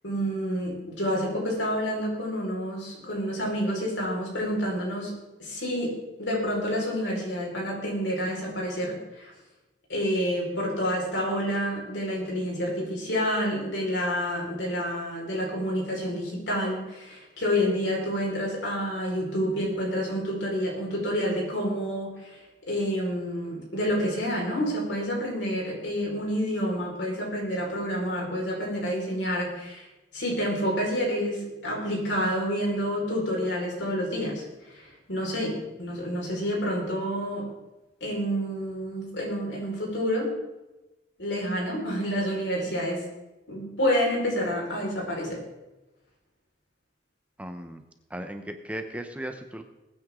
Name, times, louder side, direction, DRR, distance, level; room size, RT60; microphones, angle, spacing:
voice 1, 0.0-9.3 9.9-37.5 38.0-40.4 41.2-43.1 43.5-45.4, equal, 85° left, -2 dB, 4.9 m, -29 dB
voice 2, 47.4-47.8 48.1-49.6, right 1 dB, 5° right, 6 dB, 0.8 m, -36 dB
20.5 x 9.4 x 3.8 m, 1.0 s
head